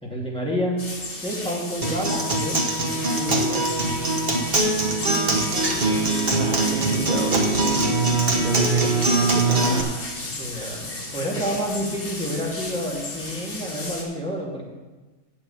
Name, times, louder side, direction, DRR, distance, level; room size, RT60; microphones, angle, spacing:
voice 1, 0.0-0.8 1.2-2.6 2.9-3.7 9.5-10.0 10.4-14.6, equal, 5° left, -4 dB, 2.2 m, -29 dB
sound 1, 0.8-14.0, left 2 dB, 80° left, 3.9 m, -33 dB
Acoustic guitar, 1.8-9.8, right 2 dB, 40° right, 1.5 m, -22 dB
voice 2, 5.2-5.6 6.3-7.5 8.4-9.8, right 6 dB, 70° right, 6 dB, 0.4 m, -32 dB
7.8 x 7.4 x 8.5 m, 1.2 s
omnidirectional pair, 1.5 m